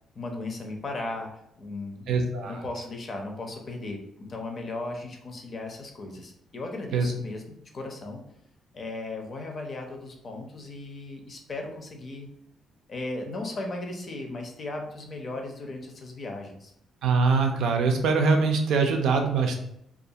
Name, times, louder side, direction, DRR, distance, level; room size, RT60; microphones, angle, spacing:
voice 1, 0.2-2.1 2.4-4.0 4.3-8.2 8.7-12.3 12.9-16.7, left 2 dB, 45° left, 3 dB, 0.6 m, -36 dB
voice 2, 2.1-2.6 6.9-7.1 17.0-19.6, right 4 dB, 80° right, 4 dB, 0.4 m, -23 dB
2.4 x 2.4 x 2.7 m, 0.74 s
cardioid pair, 90°, 0 cm